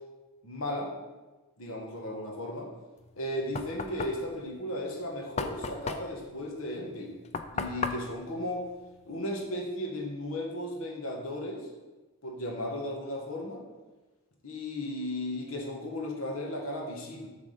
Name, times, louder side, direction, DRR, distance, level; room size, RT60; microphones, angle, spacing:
voice 1, 0.4-0.9 1.6-2.7 3.2-7.2 7.5-8.6 9.0-11.7 12.2-13.6 14.4-17.3, left 1 dB, 80° left, 1 dB, 1.5 m, -35 dB
Knock, 3.0-9.5, left 4 dB, 30° left, 0.3 m, -37 dB
7.4 x 3.7 x 6.6 m, 1.2 s
head